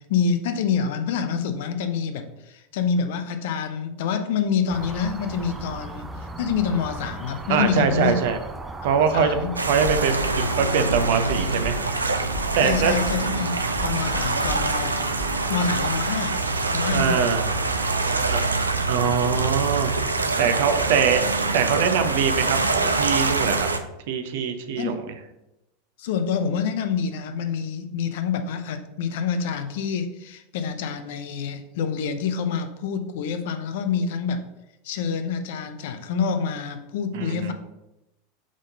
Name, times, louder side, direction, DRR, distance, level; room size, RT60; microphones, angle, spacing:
voice 1, 0.0-8.2 9.0-9.5 12.6-15.1 15.5-16.4 16.7-17.3 18.0-18.5 24.8-25.0 26.0-34.5 34.8-37.5, left 6 dB, 60° left, 8 dB, 0.6 m, -27 dB
sound 1, 4.7-23.7, right 2 dB, 15° right, 0.6 m, -37 dB
voice 2, 7.5-8.4 8.8-9.4 9.7-11.8 12.5-12.9 16.9-17.5 18.3-18.4 18.9-19.9 20.4-21.2 21.5-23.7 24.1-25.0 37.1-37.5, right 7 dB, 60° right, 8 dB, 0.7 m, -23 dB
sound 2, 9.6-23.8, right 3 dB, 90° right, 0.5 m, -25 dB
sound 3, 13.0-15.5, equal, 10° left, 1.4 m, -37 dB
5.0 x 3.7 x 5.2 m, 0.91 s
figure-of-eight pair, 85°, 0 cm